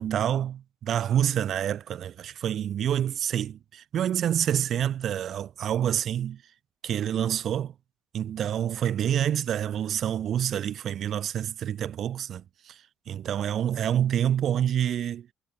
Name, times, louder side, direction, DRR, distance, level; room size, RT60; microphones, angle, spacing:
voice 1, 0.0-6.4 6.8-7.7 8.1-12.8 13.1-15.3, right 10 dB, 60° right, 2.8 m, -27 dB
supercardioid pair, 75°, 0 cm